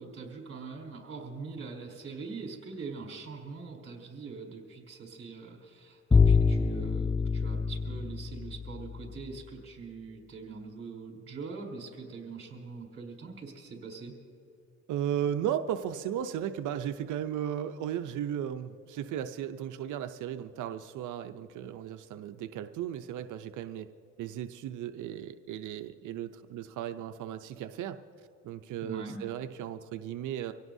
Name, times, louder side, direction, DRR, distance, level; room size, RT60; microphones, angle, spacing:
voice 1, 0.0-14.2 28.8-29.2, right 4 dB, 45° right, 0 dB, 4.3 m, -43 dB
Bowed string instrument, 6.1-9.2, left 5 dB, 10° left, 0.3 m, -25 dB
voice 2, 14.9-23.9 24.2-28.0 28.4-30.5, right 10 dB, 80° right, 8 dB, 0.6 m, -35 dB
25.5 x 17.0 x 2.7 m, 2.6 s
cardioid pair, 90°, 30 cm